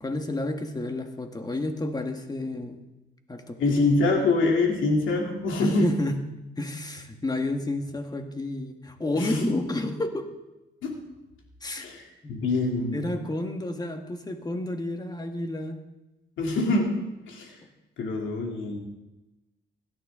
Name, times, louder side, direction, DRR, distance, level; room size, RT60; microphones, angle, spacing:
voice 1, 0.0-2.8 3.3-3.8 5.6-6.2 6.6-10.4 11.6-11.9 12.2-12.4 12.9-15.8, left 1 dB, 20° left, 6 dB, 1.6 m, -30 dB
voice 2, 3.6-5.9 9.1-9.4 10.8-11.0 11.8-13.0 16.4-17.0 17.3-17.6 18.0-18.8, left 2 dB, 75° left, 1 dB, 2.8 m, -25 dB
16.5 x 12.0 x 3.7 m, 1.0 s
cardioid pair, 90°, 20 cm